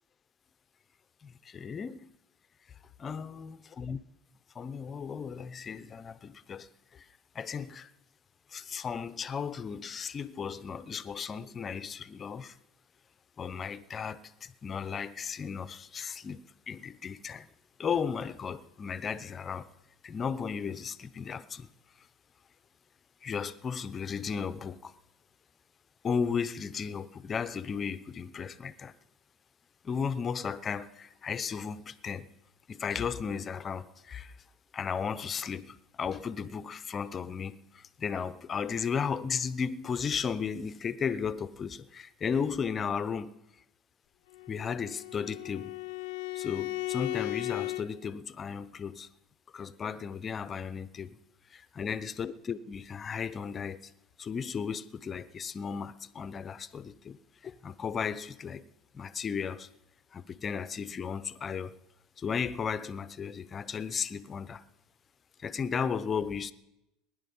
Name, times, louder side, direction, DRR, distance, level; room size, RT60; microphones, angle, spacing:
voice 1, 1.2-2.1 3.0-4.0 4.5-7.1 7.3-7.9 8.5-12.6 13.4-17.5 17.8-19.7 20.0-21.7 23.2-24.9 26.0-28.9 29.8-32.3 32.7-34.3 34.7-43.4 44.5-45.8 46.3-49.1 49.5-51.2 51.5-53.9 54.2-57.2 57.4-58.7 58.9-59.7 60.1-61.8 62.2-64.6 65.4-66.5, left 6 dB, 30° left, 0.7 m, -35 dB
Bowed string instrument, 44.3-47.9, left 19 dB, 80° left, 0.6 m, -36 dB
19.5 x 10.5 x 5.5 m
supercardioid pair, 125°, 0 cm